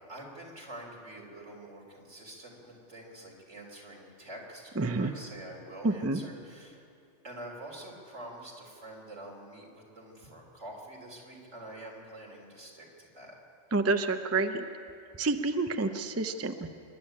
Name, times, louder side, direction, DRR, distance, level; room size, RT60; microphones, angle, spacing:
voice 1, 0.1-6.8 7.2-13.3, right 1 dB, 75° right, -1 dB, 4.0 m, -46 dB
voice 2, 4.8-5.1 5.8-6.2 13.7-14.6 15.2-16.7, right 3 dB, 15° right, 7 dB, 0.6 m, -28 dB
26.0 x 11.5 x 8.7 m, 2.5 s
omnidirectional pair, 1.2 m